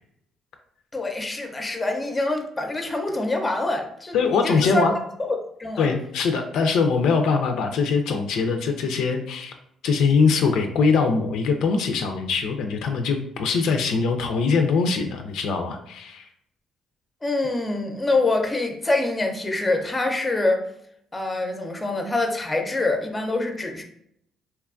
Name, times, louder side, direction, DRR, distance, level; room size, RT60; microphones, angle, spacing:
voice 1, 0.9-4.9 5.2-5.9 17.2-20.6 21.1-23.8, left 2 dB, 20° left, 4 dB, 0.5 m, -25 dB
voice 2, 4.1-5.0 5.8-9.5 9.8-16.3, left 5 dB, 80° left, 5 dB, 0.3 m, -22 dB
2.8 x 2.2 x 2.4 m, 0.71 s
cardioid pair, 85°, 0 cm